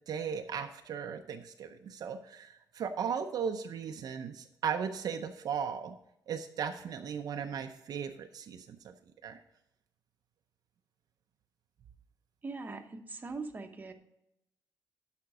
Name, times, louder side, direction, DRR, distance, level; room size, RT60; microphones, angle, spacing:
voice 1, 0.1-6.0 6.3-8.9 9.2-9.4, right 7 dB, 60° right, 6 dB, 0.6 m, -37 dB
voice 2, 12.4-13.9, right 3 dB, 25° right, 5 dB, 0.9 m, -41 dB
12.5 x 5.2 x 4.8 m, 0.82 s
cardioid pair, 140°, 7 cm